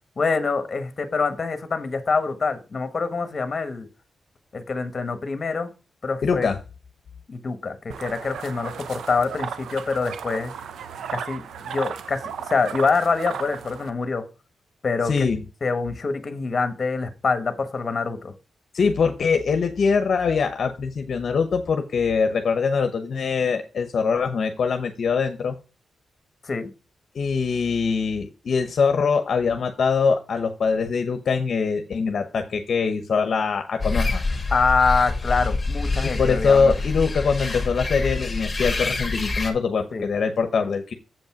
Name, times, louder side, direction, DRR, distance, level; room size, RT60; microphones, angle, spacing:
voice 1, 0.2-3.9 4.5-5.7 6.0-6.5 7.3-10.5 11.1-12.2 12.5-14.2 14.8-15.3 15.6-18.3 26.4-26.7 34.5-36.7 39.9-40.0, left 4 dB, 35° left, 1.3 m, -25 dB
voice 2, 6.2-6.6 15.0-15.4 18.7-25.5 27.1-34.2 36.0-40.9, left 5 dB, 55° left, 0.8 m, -23 dB
sound 1, 7.9-13.9, right 7 dB, 85° right, 0.6 m, -35 dB
sound 2, 33.8-39.5, left 3 dB, 20° left, 1.9 m, -26 dB
7.6 x 5.3 x 5.9 m
wide cardioid pair, 125°, 0 cm